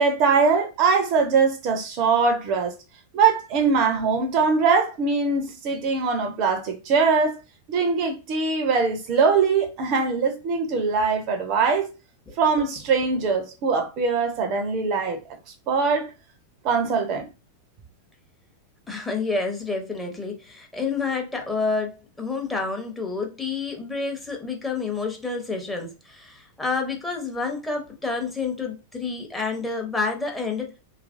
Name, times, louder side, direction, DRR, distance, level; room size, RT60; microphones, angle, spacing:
voice 1, 0.0-2.7 3.1-7.4 7.7-11.9 12.4-15.2 15.7-16.1 16.6-17.3, right 5 dB, 40° right, 0.5 m, -22 dB
voice 2, 18.9-30.7, left 4 dB, 5° left, 0.7 m, -29 dB
2.9 x 2.4 x 2.5 m
figure-of-eight pair, 90°, 0 cm